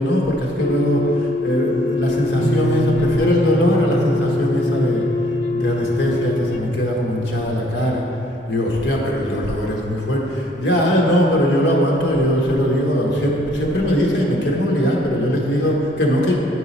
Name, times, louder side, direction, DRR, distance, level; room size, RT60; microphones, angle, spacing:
voice 1, 0.0-5.1 5.5-8.0 8.5-16.3, equal, 80° left, -2 dB, 1.2 m, -20 dB
sound 1, 0.6-6.6, left 5 dB, 55° left, 0.4 m, -24 dB
sound 2, 2.4-7.9, right 3 dB, 70° right, 0.4 m, -25 dB
8.9 x 4.7 x 4.2 m, 2.9 s
head